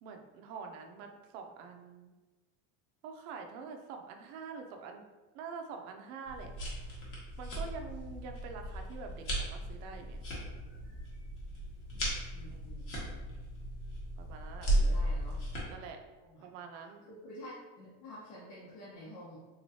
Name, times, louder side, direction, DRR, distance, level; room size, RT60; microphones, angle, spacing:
voice 1, 0.0-2.1 3.0-5.0 5.3-6.5 7.4-10.2 12.5-12.9 14.2-15.0 15.7-16.0 16.4-17.0, right 5 dB, 60° right, 4 dB, 0.6 m, -46 dB
sound 1, 6.3-15.6, right 1 dB, 35° left, 1.0 m, -36 dB
voice 2, 12.3-13.3 14.6-15.4 16.2-16.5 17.0-19.4, left 1 dB, 70° left, -8 dB, 1.0 m, -49 dB
3.9 x 3.0 x 2.7 m, 1.2 s
cardioid pair, 180°, 39 cm